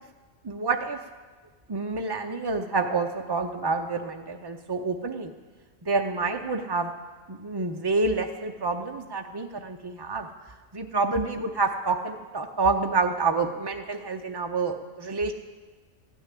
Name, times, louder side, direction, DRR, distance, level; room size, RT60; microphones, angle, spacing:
voice 1, 0.4-1.0 1.7-5.3 5.8-6.9 7.3-10.3 10.7-15.3, right 3 dB, 40° right, 4 dB, 0.3 m, -28 dB
14.0 x 6.3 x 9.9 m, 1.4 s
omnidirectional pair, 1.3 m